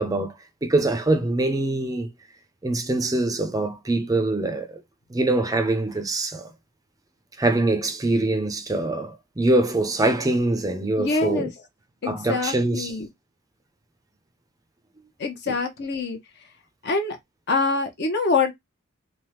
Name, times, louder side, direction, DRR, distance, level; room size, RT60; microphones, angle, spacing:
voice 1, 0.0-2.1 2.6-4.8 5.1-6.5 7.4-11.5 12.0-13.0 15.5-15.6, right 2 dB, 15° right, 0.4 m, -24 dB
voice 2, 11.0-11.5 12.0-13.1 15.2-16.2 16.8-17.2 17.5-18.5, left 3 dB, 55° left, 0.7 m, -25 dB
3.4 x 2.1 x 2.8 m
head